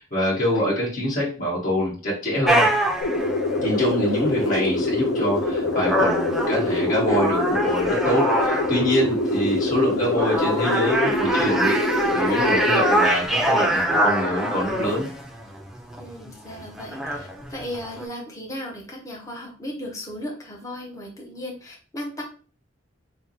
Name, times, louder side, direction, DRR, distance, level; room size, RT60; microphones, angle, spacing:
voice 1, 0.0-2.7 3.6-11.8 12.1-15.1, equal, 45° left, -5 dB, 1.4 m, -25 dB
sound 1, 2.5-18.1, right 1 dB, ahead, 0.4 m, -25 dB
sound 2, 3.0-13.0, left 2 dB, 70° left, 0.6 m, -25 dB
voice 2, 16.0-22.2, left 1 dB, 15° left, -1 dB, 0.8 m, -36 dB
3.4 x 2.1 x 4.1 m, 0.38 s
head